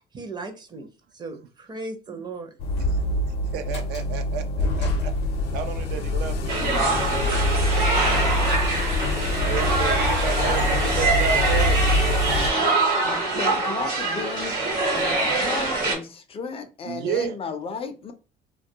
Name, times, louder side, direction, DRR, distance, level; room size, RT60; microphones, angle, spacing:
voice 1, 0.1-0.9 1.1-2.5, right 3 dB, 25° right, 0.5 m, -36 dB
sound 1, 2.6-12.5, left 1 dB, 85° left, 0.5 m, -25 dB
voice 2, 3.4-5.1 5.5-7.2 7.5-8.6 9.4-11.8 16.9-17.4, right 7 dB, 80° right, 0.4 m, -32 dB
sound 2, 6.5-15.9, right 3 dB, 60° right, 1.1 m, -24 dB
voice 3, 13.0-14.6 14.9-18.1, left 5 dB, 35° left, 0.4 m, -34 dB
2.2 x 2.2 x 2.7 m
cardioid pair, 110°, 17 cm